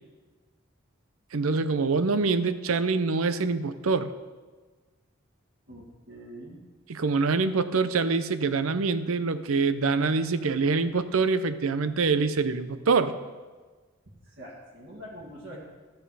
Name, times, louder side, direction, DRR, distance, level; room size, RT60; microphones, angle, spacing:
voice 1, 1.3-4.1 6.9-13.1, right 4 dB, 90° right, 12 dB, 0.6 m, -25 dB
voice 2, 5.7-6.6 14.4-15.6, equal, 55° right, -4 dB, 2.0 m, -44 dB
13.0 x 8.0 x 4.8 m, 1.3 s
head